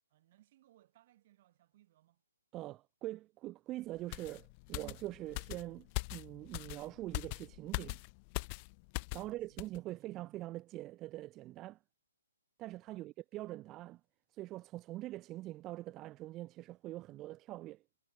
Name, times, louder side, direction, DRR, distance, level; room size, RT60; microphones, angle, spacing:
voice 1, 0.1-2.2 9.1-10.4 12.9-13.1, right 14 dB, 40° right, 5.3 m, -67 dB
voice 2, 2.5-8.0 9.1-11.8 12.6-14.0 14.3-17.8, right 16 dB, 20° right, 1.3 m, -44 dB
sound 1, 4.1-9.3 9.6-9.8, left 31 dB, 30° left, 0.5 m, -41 dB
hypercardioid pair, 145°, 0 cm